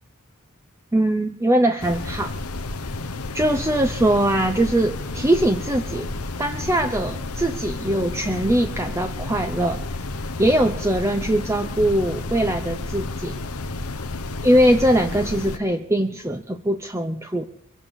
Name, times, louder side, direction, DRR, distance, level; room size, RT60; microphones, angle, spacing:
voice 1, 0.9-2.3 3.3-6.1 6.4-9.8 10.4-13.4 14.4-17.5, right 1 dB, 10° right, 7 dB, 0.6 m, -21 dB
sound 1, 1.8-15.6, left 2 dB, 90° left, 1.0 m, -31 dB
23.0 x 8.3 x 7.2 m, 0.70 s
head